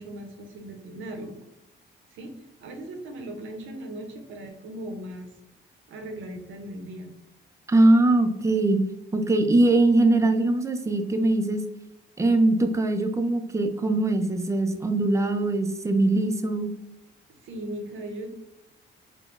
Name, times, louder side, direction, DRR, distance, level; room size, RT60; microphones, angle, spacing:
voice 1, 0.0-1.3 2.1-2.3 2.6-5.3 5.9-7.1 17.3-18.3, right 1 dB, 75° right, 5 dB, 0.6 m, -38 dB
voice 2, 7.7-8.8 9.1-11.6 12.2-16.7, right 2 dB, 15° right, 6 dB, 0.3 m, -21 dB
3.6 x 2.0 x 2.3 m, 0.89 s
cardioid pair, 90°, 20 cm